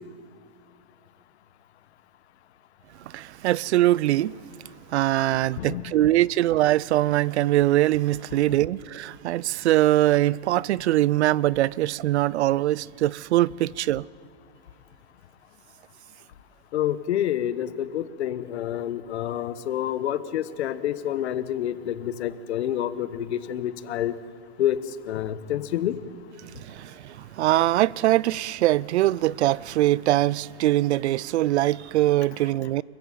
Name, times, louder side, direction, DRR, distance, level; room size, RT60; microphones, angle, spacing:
voice 1, 3.1-4.4 4.9-14.0 26.5-32.8, right 15 dB, 80° right, 0.6 m, -22 dB
voice 2, 5.3-5.9 16.7-24.1 24.6-24.8 25.1-26.0, left 11 dB, 80° left, 1.3 m, -28 dB
25.0 x 15.0 x 9.1 m
supercardioid pair, 175°, 33 cm